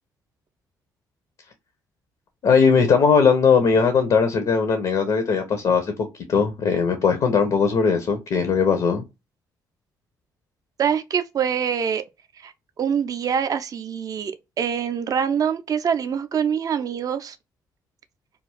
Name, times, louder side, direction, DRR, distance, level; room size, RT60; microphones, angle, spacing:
voice 1, 2.4-5.9 6.3-9.0, left 5 dB, 50° left, 0.6 m, -19 dB
voice 2, 10.8-12.0 12.4-12.5 12.8-17.4, right 7 dB, 35° right, 0.4 m, -24 dB
2.3 x 2.3 x 3.2 m
figure-of-eight pair, 40°, 10 cm